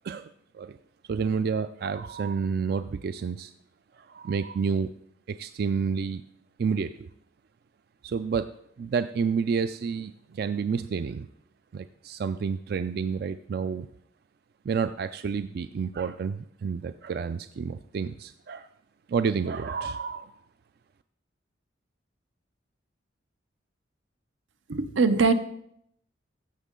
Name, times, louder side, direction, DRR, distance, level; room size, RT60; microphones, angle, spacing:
voice 1, 1.1-3.5 3.9-4.9 5.3-6.2 6.6-7.1 8.0-8.5 8.8-11.3 11.7-13.9 14.6-18.7 19.1-20.3, right 5 dB, 55° right, 12 dB, 0.3 m, -29 dB
voice 2, 24.7-25.3, right 4 dB, 85° right, 10 dB, 0.7 m, -21 dB
15.0 x 6.2 x 3.8 m, 0.72 s
head